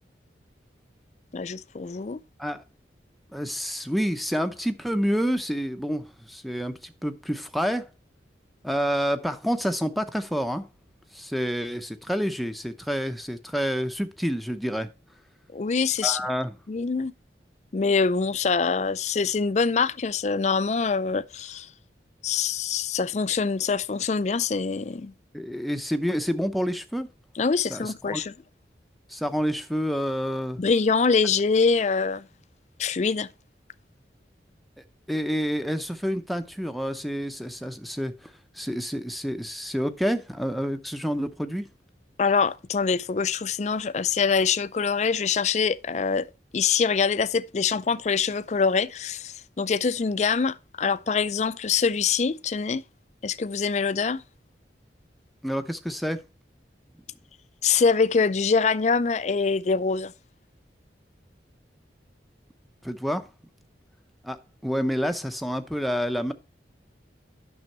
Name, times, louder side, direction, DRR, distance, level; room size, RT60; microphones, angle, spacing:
voice 1, 1.3-2.2 15.5-16.2 16.7-17.1 17.7-21.7 22.2-25.1 27.4-28.3 30.6-32.3 32.8-33.3 42.2-46.3 46.5-52.8 53.2-54.2 57.6-60.1, left 5 dB, 40° left, 0.4 m, -24 dB
voice 2, 3.3-7.9 8.6-10.7 11.1-14.9 16.0-16.5 25.3-27.1 27.7-28.2 29.1-30.6 35.1-41.7 55.4-56.2 62.8-63.3 64.2-66.3, equal, ahead, 0.6 m, -28 dB
9.4 x 6.2 x 4.4 m
head